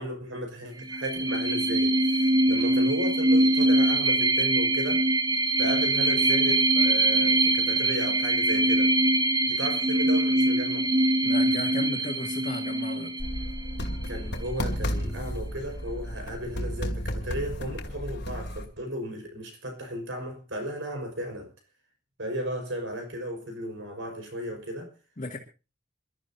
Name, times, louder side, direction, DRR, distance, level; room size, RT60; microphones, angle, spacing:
voice 1, 0.0-5.0 5.6-8.9 9.5-10.9 14.1-21.5 22.2-24.9, equal, 75° right, 5.2 m, -35 dB
sound 1, 0.8-14.2, right 1 dB, 25° right, 1.0 m, -23 dB
voice 2, 11.2-13.1 25.2-25.4, left 2 dB, 40° left, 2.1 m, -35 dB
sound 2, 13.2-18.7, equal, 60° left, 2.3 m, -33 dB
28.0 x 13.0 x 2.8 m
head